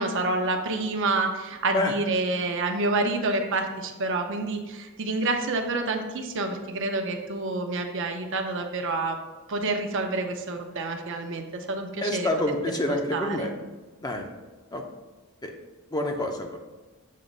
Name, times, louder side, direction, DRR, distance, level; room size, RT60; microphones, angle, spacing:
voice 1, 0.0-9.2 9.5-12.3 13.1-13.5, right 2 dB, 60° right, 4 dB, 0.7 m, -28 dB
voice 2, 12.0-13.5 14.0-14.3 14.7-14.8 15.4-15.5 15.9-16.6, left 1 dB, 20° left, 3 dB, 0.6 m, -27 dB
7.5 x 3.0 x 5.3 m, 1.3 s
head